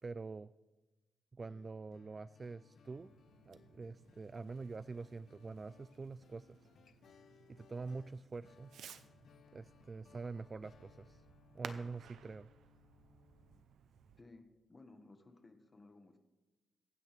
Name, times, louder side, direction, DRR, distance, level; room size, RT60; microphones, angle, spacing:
voice 1, 0.0-0.5 1.3-3.1 3.5-6.6 7.5-8.7 9.5-11.3 11.5-12.5, right 4 dB, 35° right, 16 dB, 0.3 m, -45 dB
sound 1, 1.4-13.6, left 8 dB, 70° left, 0.4 m, -65 dB
Fireworks, 2.8-14.2, right 8 dB, 85° right, 0.7 m, -57 dB
voice 2, 14.7-16.2, left 2 dB, 30° left, 6 dB, 1.6 m, -58 dB
24.0 x 9.2 x 3.5 m, 1.1 s
cardioid pair, 85°, 0 cm